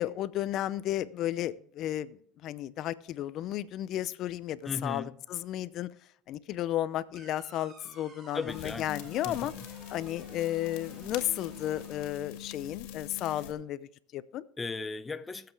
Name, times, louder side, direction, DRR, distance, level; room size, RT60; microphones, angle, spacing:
voice 1, 0.0-5.9 6.3-9.5 9.9-14.4, left 13 dB, 60° left, 0.6 m, -33 dB
voice 2, 4.7-5.2 8.3-9.7 14.6-15.5, left 4 dB, 20° left, 0.7 m, -37 dB
sound 1, 7.1-12.1, right 4 dB, 40° right, 3.4 m, -52 dB
sound 2, 8.5-13.5, left 11 dB, 80° left, 2.0 m, -44 dB
20.5 x 7.7 x 3.5 m
supercardioid pair, 100°, 0 cm